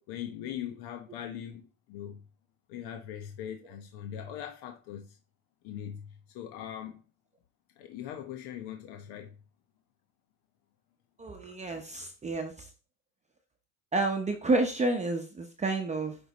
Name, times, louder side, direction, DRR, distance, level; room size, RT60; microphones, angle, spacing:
voice 1, 0.1-2.2 2.7-5.2 5.6-7.0 7.8-9.3, left 10 dB, 75° left, 0.9 m, -41 dB
voice 2, 11.2-12.7 13.9-16.2, right 2 dB, 20° right, 0.7 m, -30 dB
9.3 x 3.3 x 4.0 m
cardioid pair, 130°, 39 cm